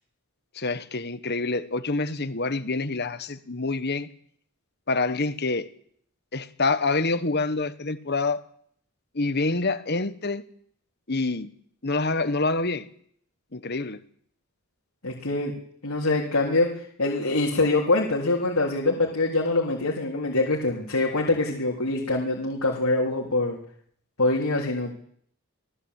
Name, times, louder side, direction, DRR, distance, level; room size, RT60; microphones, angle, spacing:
voice 1, 0.5-4.1 4.9-5.7 6.3-8.4 9.1-10.4 11.1-11.5 11.8-12.9 13.5-14.0, left 3 dB, 50° left, 12 dB, 1.4 m, -26 dB
voice 2, 15.0-15.5 15.8-23.6 24.2-24.9, left 2 dB, 85° left, -1 dB, 3.7 m, -24 dB
27.0 x 17.5 x 8.4 m, 0.66 s
head